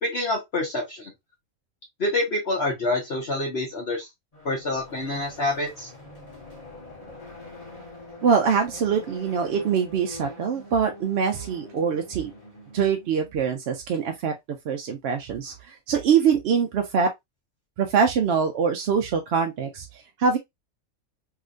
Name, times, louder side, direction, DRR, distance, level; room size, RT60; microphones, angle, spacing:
voice 1, 0.0-1.1 2.0-4.1 4.4-5.9, left 2 dB, 50° left, 1.2 m, -27 dB
sound 1, 4.3-13.5, left 2 dB, 25° left, 1.5 m, -44 dB
voice 2, 8.2-12.3 12.7-14.3 14.6-17.1 17.8-20.4, right 6 dB, 65° right, 0.7 m, -24 dB
3.2 x 2.8 x 2.5 m
omnidirectional pair, 1.5 m